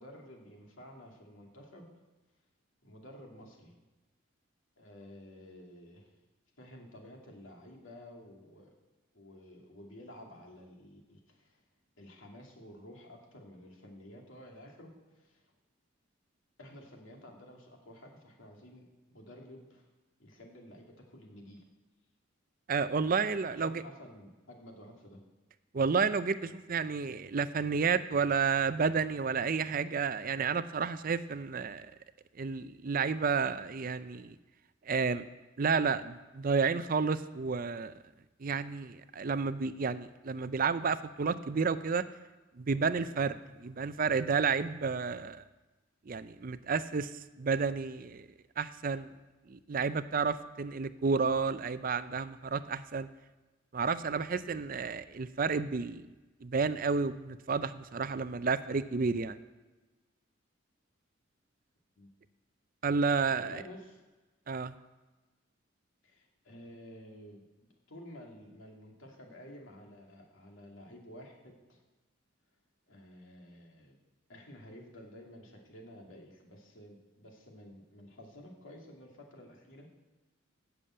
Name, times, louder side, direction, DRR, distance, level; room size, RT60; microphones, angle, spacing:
voice 1, 0.0-1.9 2.8-3.7 4.8-6.1 6.6-8.7 9.1-11.6 12.0-15.5 16.6-19.9 20.2-21.7 23.4-25.2 61.9-62.1 63.3-64.0 66.0-67.4 67.9-71.8 72.9-74.0 74.3-79.9, left 1 dB, 75° left, 0 dB, 2.6 m, -52 dB
voice 2, 22.7-23.8 25.7-31.9 32.4-34.4 34.9-35.2 35.6-37.9 38.4-42.0 42.6-45.4 46.1-48.3 48.6-49.1 49.5-53.1 53.7-56.1 56.4-59.4 62.8-63.6 64.5-64.7, right 5 dB, 45° right, 13 dB, 0.5 m, -31 dB
11.0 x 7.0 x 8.7 m, 1.2 s
head